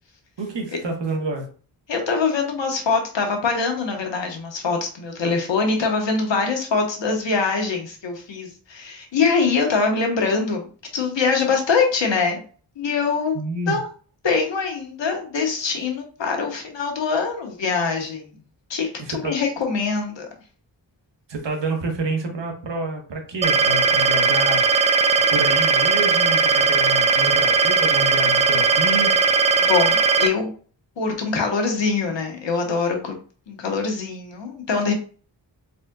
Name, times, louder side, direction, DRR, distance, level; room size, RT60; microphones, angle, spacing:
voice 1, 0.4-1.5 13.3-13.8 19.0-19.4 21.3-24.8 25.1-29.1, right 2 dB, 75° right, 2 dB, 1.2 m, -28 dB
voice 2, 1.9-12.4 12.8-13.4 13.7-13.8 14.2-18.3 18.7-20.3 29.6-30.5 31.0-33.2 33.5-34.9, left 4 dB, 80° left, 2 dB, 1.2 m, -23 dB
sound 1, 23.4-30.3, right 4 dB, 15° right, 0.3 m, -18 dB
4.1 x 3.7 x 2.3 m, 0.41 s
cardioid pair, 55°, 44 cm